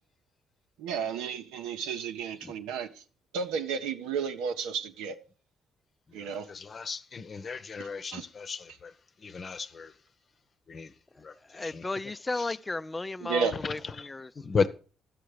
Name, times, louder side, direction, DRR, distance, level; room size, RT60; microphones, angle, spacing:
voice 1, 0.8-3.0 3.3-5.2 6.1-6.5 7.8-8.2 13.2-13.5, right 6 dB, 75° right, 0.8 m, -33 dB
voice 2, 6.2-8.9 9.2-9.9 10.7-10.9 11.2-11.8 12.4-12.5 14.0-14.1 14.4-14.7, left 5 dB, 45° left, 0.9 m, -34 dB
voice 3, 11.5-14.3, left 2 dB, 25° left, 0.5 m, -34 dB
11.5 x 7.7 x 4.9 m
hypercardioid pair, 45°, 0 cm